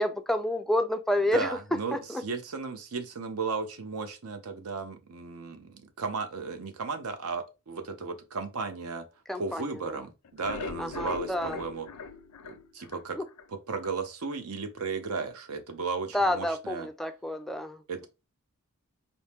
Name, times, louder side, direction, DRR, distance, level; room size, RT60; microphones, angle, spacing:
voice 1, 0.0-1.6 1.9-2.2 9.3-10.0 10.8-11.6 13.2-13.3 16.1-18.1, left 1 dB, ahead, 0.3 m, -29 dB
voice 2, 1.3-9.0 9.3-11.9 12.4-13.2 13.5-16.9 17.9-18.1, right 4 dB, 70° right, 0.7 m, -35 dB
sound 1, 10.2-13.5 13.8-13.9 14.3-14.4 14.8-14.9, left 5 dB, 85° left, 0.5 m, -40 dB
4.2 x 2.0 x 3.4 m
head